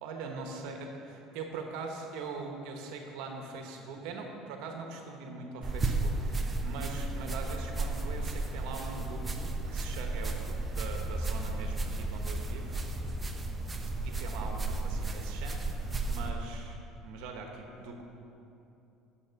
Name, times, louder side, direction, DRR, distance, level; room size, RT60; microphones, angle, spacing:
voice 1, 0.0-13.1 14.0-18.0, right 3 dB, 75° right, 3 dB, 1.1 m, -42 dB
sound 1, 5.6-16.3, right 2 dB, 20° right, 0.8 m, -33 dB
9.5 x 7.1 x 5.8 m, 2.8 s
supercardioid pair, 115°, 0 cm